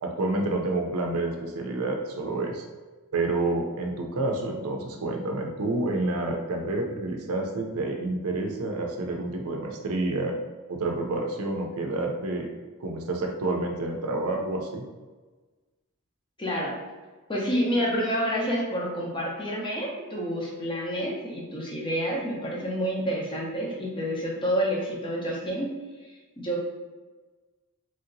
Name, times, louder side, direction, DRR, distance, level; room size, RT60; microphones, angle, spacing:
voice 1, 0.0-2.6 3.1-10.3 10.7-12.5 12.8-14.8, right 2 dB, 75° right, 2 dB, 0.5 m, -29 dB
voice 2, 16.4-16.8 17.3-25.7 26.4-26.6, equal, 20° left, -3 dB, 0.6 m, -28 dB
3.1 x 2.7 x 2.6 m, 1.3 s
head